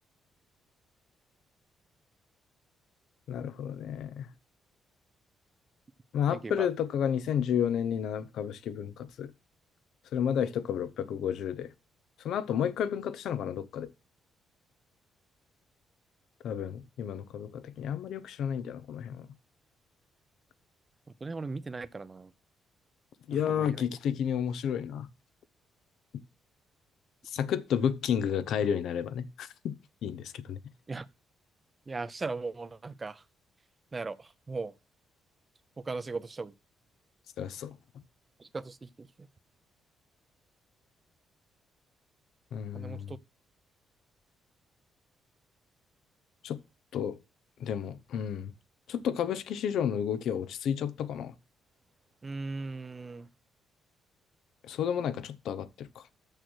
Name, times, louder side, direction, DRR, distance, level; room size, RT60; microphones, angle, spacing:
voice 1, 3.3-4.3 6.1-9.3 10.1-11.7 12.2-13.9 16.4-19.3 23.3-25.1 27.3-29.7 30.0-30.6 37.4-37.8 42.5-43.1 46.4-46.6 46.9-47.2 47.6-48.5 48.9-51.3 54.7-55.9, left 8 dB, 75° left, 0.8 m, -31 dB
voice 2, 6.3-6.7 21.2-22.3 23.3-23.9 30.9-31.1 31.9-33.2 33.9-34.7 35.8-36.5 38.4-39.3 42.7-43.2 52.2-53.3, right 3 dB, 30° right, 0.6 m, -38 dB
6.6 x 6.4 x 6.2 m
cardioid pair, 90°, 0 cm